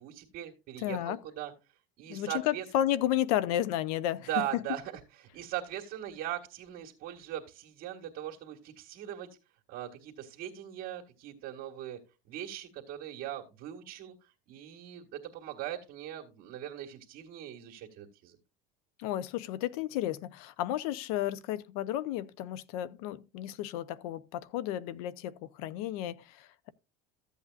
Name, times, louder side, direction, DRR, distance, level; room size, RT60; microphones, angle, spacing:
voice 1, 0.0-1.5 2.0-2.6 4.3-4.8 5.3-9.3 9.7-12.0 12.3-14.1 14.5-18.4, right 12 dB, 55° right, 2.0 m, -39 dB
voice 2, 0.8-1.2 2.1-4.6 19.0-26.7, left 12 dB, 80° left, 0.8 m, -32 dB
14.5 x 8.3 x 2.5 m
cardioid pair, 140°, 19 cm